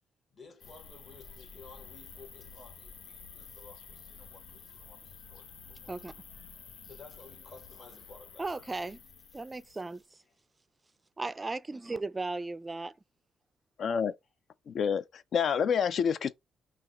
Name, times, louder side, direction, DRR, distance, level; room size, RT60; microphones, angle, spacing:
voice 1, 0.3-5.9 6.8-8.6, left 4 dB, 45° left, 1.5 m, -54 dB
sound 1, 0.6-10.0, left 6 dB, 85° left, 0.9 m, -51 dB
voice 2, 8.4-9.0 9.3-10.2 11.2-12.9, right 3 dB, 20° right, 0.3 m, -36 dB
voice 3, 13.8-14.1 14.7-16.3, left 7 dB, 60° left, 0.3 m, -28 dB
5.7 x 2.3 x 3.0 m
cardioid pair, 90°, 0 cm